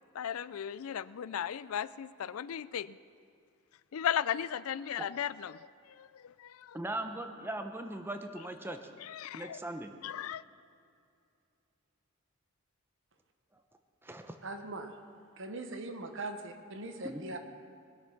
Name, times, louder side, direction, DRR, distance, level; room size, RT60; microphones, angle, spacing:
voice 1, 0.1-2.9 3.9-5.6 6.0-6.8 9.1-9.6 10.0-10.4, left 9 dB, 80° left, 17 dB, 0.4 m, -36 dB
voice 2, 6.7-8.9 9.3-9.9 14.0-14.4 17.0-17.2, right 1 dB, 10° right, 6 dB, 0.8 m, -39 dB
voice 3, 14.4-14.9 15.4-17.4, right 2 dB, 60° right, 6 dB, 1.2 m, -40 dB
20.5 x 8.3 x 5.8 m, 2.5 s
head